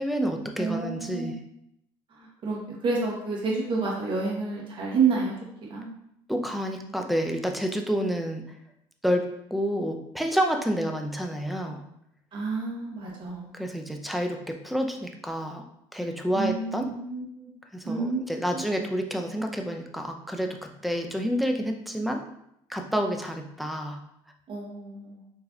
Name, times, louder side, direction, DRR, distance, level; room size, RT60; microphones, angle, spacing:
voice 1, 0.0-1.3 6.3-8.4 9.0-11.8 13.5-15.6 15.9-16.9 17.7-22.2 22.7-24.0, equal, ahead, 4 dB, 0.5 m, -29 dB
voice 2, 0.6-1.3 2.2-5.3 5.7-5.9 12.3-13.5 16.3-17.5 17.8-18.2 18.5-18.6 24.5-25.2, right 4 dB, 45° right, -3 dB, 1.4 m, -29 dB
4.5 x 3.3 x 2.7 m, 0.77 s
cardioid pair, 105°, 12 cm